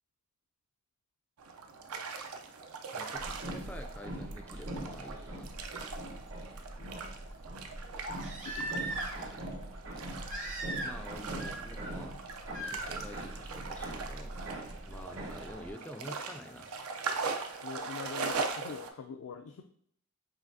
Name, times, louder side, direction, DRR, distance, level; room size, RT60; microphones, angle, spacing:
sound 1, 1.4-18.9, right 4 dB, 85° right, 0.5 m, -41 dB
voice 1, 2.9-6.0 10.8-12.2 12.6-14.3 14.9-16.7, left 1 dB, 5° left, 5 dB, 0.3 m, -48 dB
sound 2, 3.2-15.7, right 1 dB, 60° right, 0.9 m, -43 dB
Crying sobbing, 5.3-5.4 8.0-9.3 10.3-11.1 11.4-11.9 12.5-12.9 14.5-14.6, right 2 dB, 35° right, 0.7 m, -38 dB
voice 2, 8.4-8.7 17.6-19.6, left 5 dB, 80° left, 4 dB, 0.4 m, -44 dB
5.7 x 2.7 x 2.6 m, 0.65 s
head